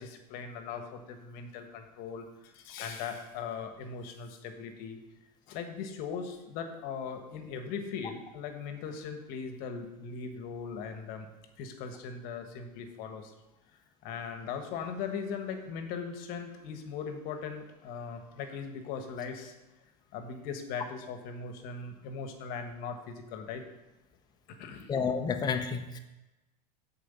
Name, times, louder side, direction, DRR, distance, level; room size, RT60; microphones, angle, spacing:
voice 1, 0.0-5.0 5.5-11.3 11.6-13.3 14.0-19.5 20.1-23.6 24.6-24.9, left 6 dB, 50° left, 6 dB, 1.3 m, -39 dB
voice 2, 24.9-26.0, left 6 dB, 20° left, 6 dB, 0.8 m, -30 dB
6.8 x 4.6 x 6.9 m, 1.0 s
supercardioid pair, 120°, 20 cm